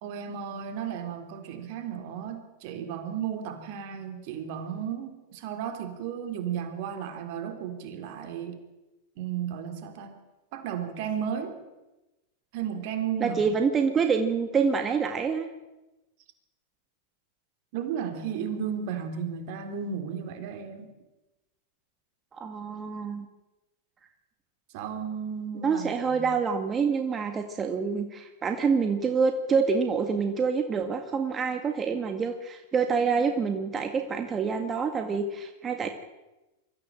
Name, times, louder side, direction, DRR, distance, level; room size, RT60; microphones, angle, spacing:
voice 1, 0.0-8.6 9.2-10.2 10.5-11.6 12.5-13.5 17.7-20.9 24.7-26.3, right 8 dB, 60° right, 6 dB, 3.8 m, -34 dB
voice 2, 13.2-15.5 22.3-23.3 25.6-35.9, right 5 dB, 25° right, 5 dB, 1.9 m, -27 dB
23.5 x 14.5 x 7.7 m, 1.0 s
hypercardioid pair, 110°, 0 cm